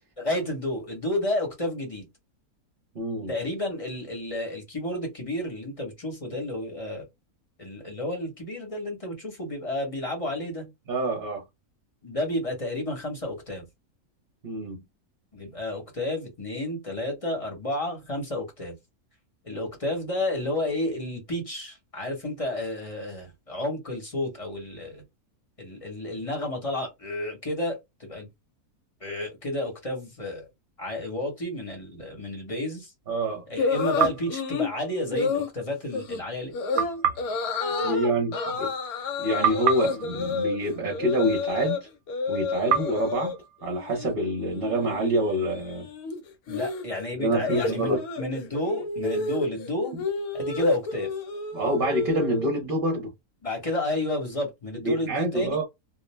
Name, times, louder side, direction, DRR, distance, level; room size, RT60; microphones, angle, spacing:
voice 1, 0.2-2.1 3.3-7.1 7.6-10.7 12.0-13.7 15.3-18.7 19.4-25.0 25.6-28.3 29.0-30.5 30.8-32.9 33.5-37.0 37.6-38.6 46.5-49.9 50.3-51.1 53.4-55.6, left 1 dB, 25° left, 0.9 m, -31 dB
voice 2, 2.9-3.3 10.9-11.4 14.4-14.8 33.1-33.4 37.8-38.7 39.2-41.9 42.3-45.9 47.1-48.0 51.5-53.1 54.8-55.6, right 1 dB, 45° right, 0.8 m, -27 dB
sound 1, 33.6-34.7 35.1-35.5 35.9-36.2 36.5-36.8 37.2-38.0 38.3-41.8 42.1-43.4 43.7-44.1 44.4-52.5, left 4 dB, 75° left, 1.1 m, -30 dB
sound 2, 34.0-35.4 36.8-39.1 39.4-41.7 42.7-44.6, right 8 dB, 75° right, 1.0 m, -31 dB
2.5 x 2.1 x 3.1 m
omnidirectional pair, 1.6 m